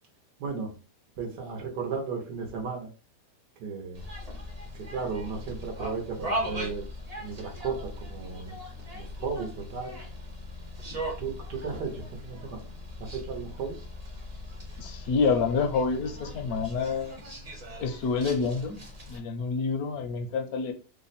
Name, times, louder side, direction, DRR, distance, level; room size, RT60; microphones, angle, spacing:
voice 1, 0.4-0.7 1.2-2.9 3.6-4.0 4.7-6.9 7.2-8.6 8.9-10.0 10.8-12.7 13.0-13.8, right 5 dB, 75° right, 0 dB, 1.4 m, -35 dB
sound 1, 3.9-19.2, equal, 30° right, 0.7 m, -39 dB
voice 2, 14.8-17.2 17.8-18.8 19.1-20.7, left 5 dB, 70° left, 6 dB, 1.1 m, -28 dB
3.4 x 2.1 x 4.0 m, 0.34 s
omnidirectional pair, 1.8 m